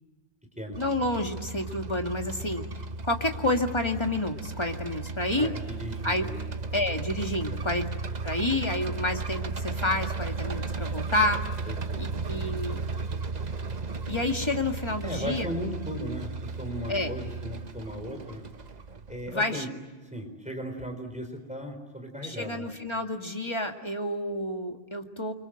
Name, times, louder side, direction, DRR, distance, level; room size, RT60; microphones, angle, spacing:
sound 1, 0.7-19.3, right 4 dB, 40° right, 1.1 m, -35 dB
voice 1, 0.8-2.6 3.0-5.5 6.0-6.3 6.7-7.9 8.2-11.4 12.0-12.8 14.1-15.5 16.9-17.1 19.3-19.7 22.2-25.3, left 1 dB, 25° left, 4 dB, 2.1 m, -29 dB
voice 2, 5.3-6.3 7.5-7.6 11.7-12.0 15.0-18.4 19.1-19.7 20.1-22.7, equal, 5° right, 4 dB, 4.7 m, -36 dB
29.5 x 24.5 x 7.8 m, 1.2 s
omnidirectional pair, 1.2 m